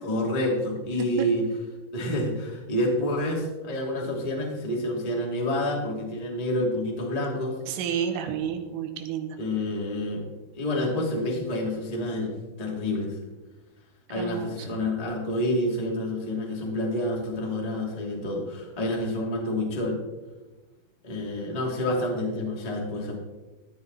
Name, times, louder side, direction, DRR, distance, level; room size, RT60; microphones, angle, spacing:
voice 1, 0.0-1.5 1.9-7.6 9.4-10.3 10.6-12.3 12.6-13.1 14.1-20.0 21.0-23.1, left 1 dB, 20° left, -2 dB, 0.9 m, -28 dB
voice 2, 7.7-9.4 14.2-14.7, right 8 dB, 90° right, 6 dB, 3.9 m, -31 dB
15.5 x 9.9 x 4.1 m, 1.2 s
omnidirectional pair, 5.7 m